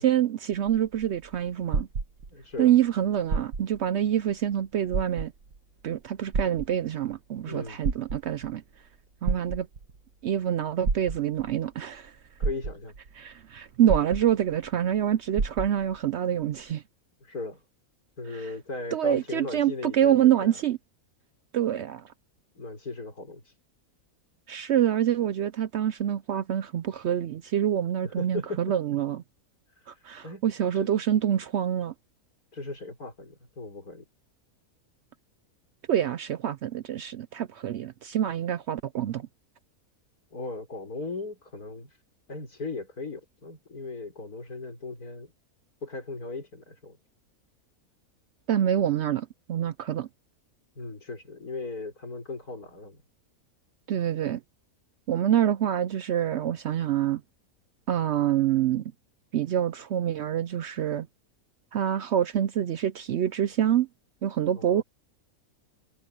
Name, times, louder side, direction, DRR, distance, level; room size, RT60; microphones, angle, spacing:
voice 1, 0.0-1.9 2.6-5.3 5.8-8.6 9.2-9.7 10.2-12.1 13.2-16.8 18.3-18.5 18.9-20.8 21.5-22.0 24.5-29.2 29.9-31.9 35.9-39.3 48.5-50.1 53.9-54.4 55.1-57.2 57.9-58.8 59.3-61.1 61.7-63.9 64.2-64.8, right 10 dB, 65° right, 0.7 m, -26 dB
sound 1, 0.5-2.6 3.2-3.9 4.3-4.4 4.9-5.6 6.3-7.2 7.7-8.5 9.3-10.0 10.8-11.5 12.1-12.2 12.4-13.1 13.9-14.7 15.0-15.1 15.4-16.0 16.7-16.8, right 4 dB, 85° right, 2.2 m, -30 dB
voice 2, 2.3-2.7 7.4-7.8 12.4-13.0 17.2-17.6 18.2-20.6 22.6-23.4 28.0-28.8 30.2-30.5 30.7-30.9 32.5-34.0 40.3-41.9 42.3-45.3 45.8-47.0 50.8-53.0 64.5-64.8, left 3 dB, 85° left, 5.9 m, -37 dB
omnidirectional pair, 1.5 m